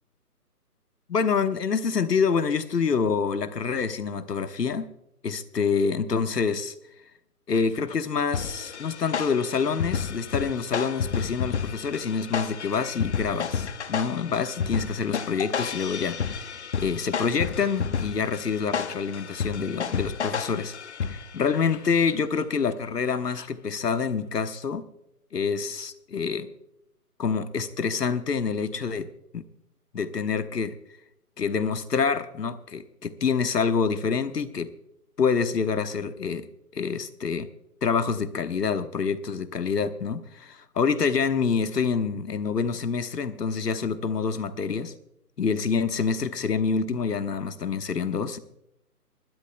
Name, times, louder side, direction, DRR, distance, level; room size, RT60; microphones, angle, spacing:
voice 1, 1.1-4.9 5.2-6.7 7.5-16.5 16.8-20.7 21.1-24.8 25.3-26.5 27.2-29.1 29.3-29.4 29.9-30.7 31.4-34.7 35.2-36.5 36.7-37.5 37.8-44.9 45.4-48.4, left 5 dB, 80° left, 1.3 m, -27 dB
sound 1, 8.3-21.5, left 6 dB, 45° left, 0.9 m, -31 dB
25.5 x 12.5 x 2.2 m
figure-of-eight pair, 155°, 47 cm